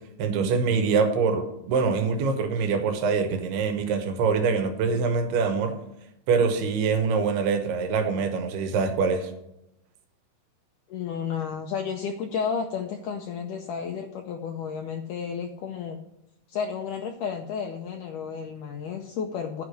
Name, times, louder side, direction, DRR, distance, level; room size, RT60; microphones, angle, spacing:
voice 1, 0.2-5.8 6.3-9.3, right 5 dB, 80° right, 6 dB, 3.2 m, -24 dB
voice 2, 10.9-16.0 16.5-19.6, left 6 dB, 85° left, 3 dB, 1.9 m, -32 dB
11.5 x 5.0 x 6.4 m, 0.86 s
omnidirectional pair, 4.6 m